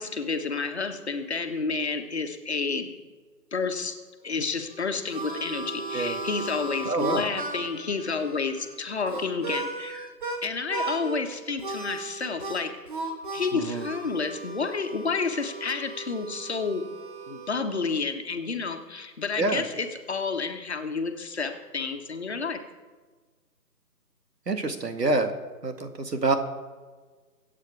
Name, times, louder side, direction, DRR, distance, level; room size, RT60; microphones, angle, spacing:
voice 1, 0.0-2.9 3.5-3.9 4.2-10.1 10.4-12.7 13.3-16.8 17.3-22.6, left 4 dB, 40° left, 5 dB, 1.4 m, -30 dB
Harmonica, 4.6-10.4 10.7-11.2 11.6-17.6, right 2 dB, 30° right, 1.6 m, -36 dB
voice 2, 6.9-7.2 13.5-13.9 19.4-19.6 24.5-25.3 25.6-26.4, right 3 dB, 80° right, 7 dB, 2.1 m, -26 dB
24.0 x 8.4 x 4.7 m, 1.4 s
figure-of-eight pair, 160°, 48 cm